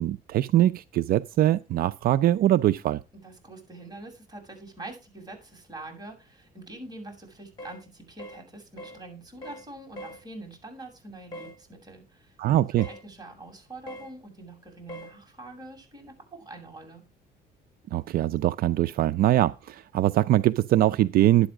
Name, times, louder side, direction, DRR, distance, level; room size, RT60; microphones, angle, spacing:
voice 1, 0.0-3.0 12.4-12.9 17.9-21.5, right 13 dB, 60° right, 0.5 m, -22 dB
voice 2, 3.1-17.0, right 2 dB, 25° right, 7.4 m, -44 dB
sound 1, 7.6-7.8 8.2-8.4 8.8-9.0 9.4-9.7 10.0-10.2 11.3-11.6 12.8-13.0 13.9-14.1 14.9-15.1, equal, 25° left, 5.3 m, -41 dB
11.5 x 8.7 x 4.8 m
cardioid pair, 110°, 17 cm